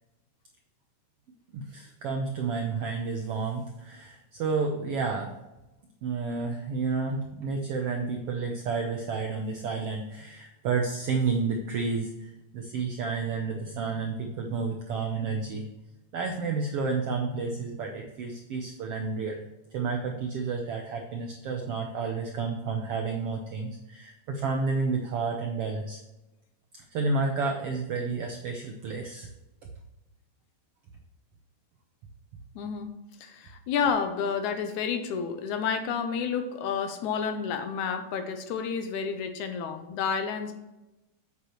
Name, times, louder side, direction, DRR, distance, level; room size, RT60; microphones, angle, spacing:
voice 1, 1.5-5.3 6.0-15.7 16.1-19.4 19.7-26.0 26.7-29.3, right 4 dB, 75° right, 3 dB, 1.3 m, -31 dB
voice 2, 32.6-32.9 33.2-40.5, left 6 dB, 75° left, 7 dB, 2.1 m, -30 dB
8.5 x 8.0 x 3.1 m, 1.0 s
omnidirectional pair, 3.7 m